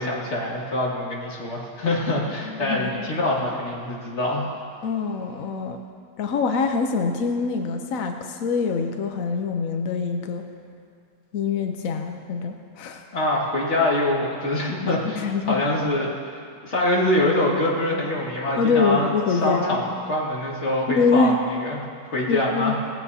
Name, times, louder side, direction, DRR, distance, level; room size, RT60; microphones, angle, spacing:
voice 1, 0.0-4.5 13.1-16.1 16.6-22.7, left 1 dB, 35° left, -4 dB, 2.3 m, -24 dB
voice 2, 2.4-3.1 4.8-5.8 6.2-10.4 11.3-13.1 15.2-15.6 18.6-19.8 20.9-21.4 22.2-22.7, left 5 dB, 75° left, 5 dB, 0.7 m, -24 dB
18.5 x 15.0 x 2.8 m, 2.3 s
omnidirectional pair, 2.3 m